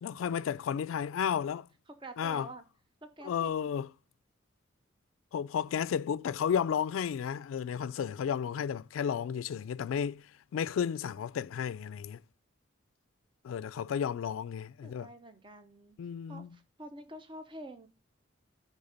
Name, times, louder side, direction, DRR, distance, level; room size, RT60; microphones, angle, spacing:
voice 1, 0.0-1.7 2.2-2.5 3.2-3.9 5.3-10.3 10.5-12.2 13.4-15.1 16.0-16.5, left 8 dB, 85° left, 0.3 m, -33 dB
voice 2, 1.9-2.6 3.0-3.5 14.8-16.0 16.3-17.9, right 1 dB, 25° right, 0.7 m, -47 dB
9.7 x 3.6 x 5.1 m
head